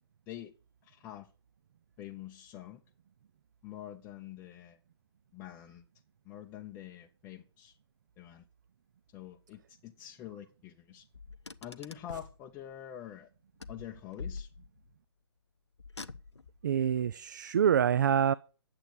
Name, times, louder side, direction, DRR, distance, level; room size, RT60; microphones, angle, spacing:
voice 1, 0.8-1.3 2.0-2.8 3.6-4.8 5.3-5.8 6.2-7.8 8.2-8.5 9.1-11.1 11.6-13.3 13.7-14.5, left 11 dB, 15° left, 0.7 m, -46 dB
Car, 11.1-12.4 13.6-14.9 15.8-16.6, left 4 dB, 80° left, 0.7 m, -44 dB
voice 2, 16.6-18.3, right 8 dB, 45° right, 0.4 m, -26 dB
10.0 x 7.7 x 6.5 m
figure-of-eight pair, 130°, 14 cm